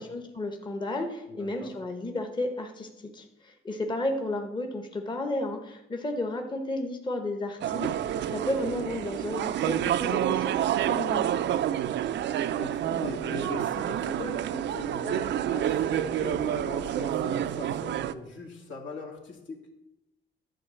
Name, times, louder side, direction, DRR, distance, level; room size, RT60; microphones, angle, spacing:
voice 1, 0.0-11.3, left 1 dB, 25° left, 4 dB, 1.0 m, -33 dB
voice 2, 1.3-1.7 11.9-12.2 12.5-19.6, left 3 dB, 70° left, 1 dB, 2.0 m, -40 dB
sound 1, 7.6-18.1, right 11 dB, 65° right, 0.5 m, -28 dB
10.0 x 3.9 x 6.8 m, 0.92 s
cardioid pair, 90°, 20 cm